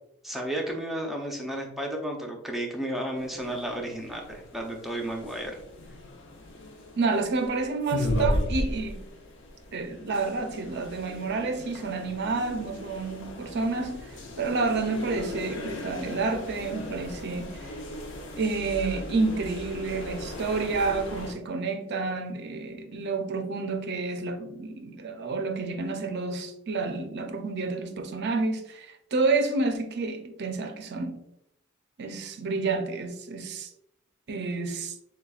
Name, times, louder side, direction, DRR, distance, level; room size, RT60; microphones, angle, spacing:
voice 1, 0.2-5.6, right 1 dB, ahead, 0.6 m, -33 dB
sound 1, 3.2-21.3, left 1 dB, 55° left, 0.7 m, -36 dB
voice 2, 7.0-9.1 9.7-17.7 18.4-31.2 32.0-33.7 34.3-34.9, right 3 dB, 50° right, 0.5 m, -29 dB
6.8 x 2.3 x 2.3 m
head